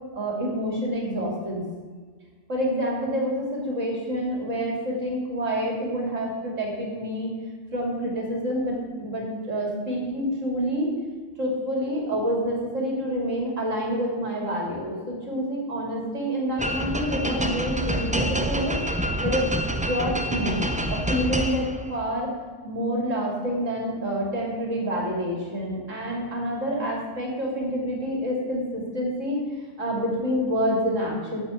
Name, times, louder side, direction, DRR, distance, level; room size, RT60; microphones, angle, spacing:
voice 1, 0.1-1.6 2.5-7.3 7.7-10.9 11.4-18.8 19.2-19.5 19.9-20.6 20.9-22.3 22.6-29.4 29.8-31.4, equal, 75° right, -1 dB, 3.2 m, -27 dB
sound 1, 16.6-22.0, right 1 dB, 10° right, 0.3 m, -27 dB
9.0 x 7.6 x 8.3 m, 1.5 s
omnidirectional pair, 1.3 m